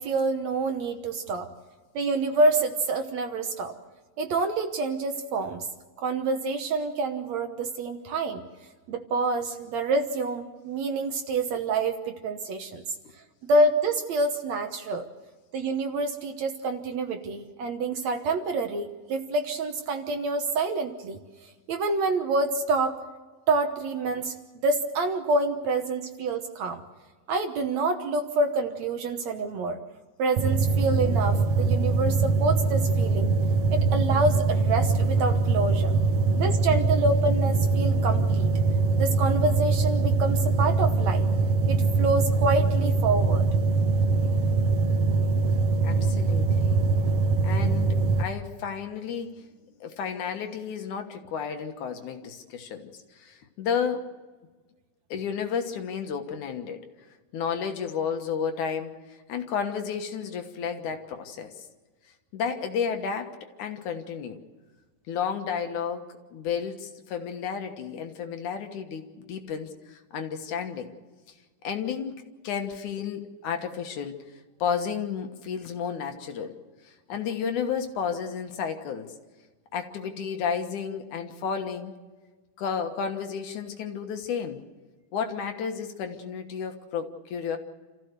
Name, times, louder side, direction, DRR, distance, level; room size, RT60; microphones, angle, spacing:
voice 1, 0.0-1.5 2.0-3.7 4.2-5.7 6.0-8.4 8.9-13.0 13.4-15.1 15.5-21.2 21.7-23.0 23.5-26.8 27.3-29.8 30.2-33.3 33.7-35.9 36.4-38.5 39.0-41.2 41.7-43.5, right 3 dB, 65° right, 6 dB, 2.1 m, -27 dB
sound 1, 30.4-48.2, right 3 dB, 85° right, 1.3 m, -23 dB
voice 2, 45.8-46.8 47.4-49.5 49.8-54.1 55.1-56.8 57.3-59.0 59.3-61.6 62.3-64.4 65.1-70.9 71.6-72.1 72.4-74.1 74.6-76.5 76.8-79.1 79.7-81.9 82.6-84.6 85.1-87.6, left 7 dB, 65° left, 5 dB, 2.7 m, -32 dB
28.0 x 15.0 x 6.7 m, 1.3 s
omnidirectional pair, 3.9 m